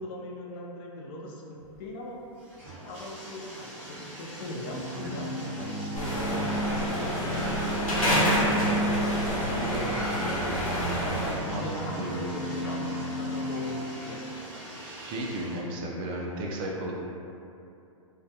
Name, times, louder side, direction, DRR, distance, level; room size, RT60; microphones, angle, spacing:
voice 1, 0.0-2.2 2.8-7.8 8.1-8.6 9.6-14.4, left 1 dB, 40° left, -2 dB, 0.5 m, -39 dB
Bathtub (filling or washing), 1.6-15.6, equal, 10° right, 0.8 m, -44 dB
sound 1, 4.7-13.8, right 1 dB, 20° left, 0.9 m, -34 dB
sound 2, 5.9-11.3, equal, 85° left, 0.8 m, -28 dB
voice 2, 11.4-12.2 14.7-17.0, right 1 dB, 30° right, -2 dB, 0.4 m, -34 dB
2.2 x 2.2 x 2.7 m, 2.7 s
hypercardioid pair, 125°, 18 cm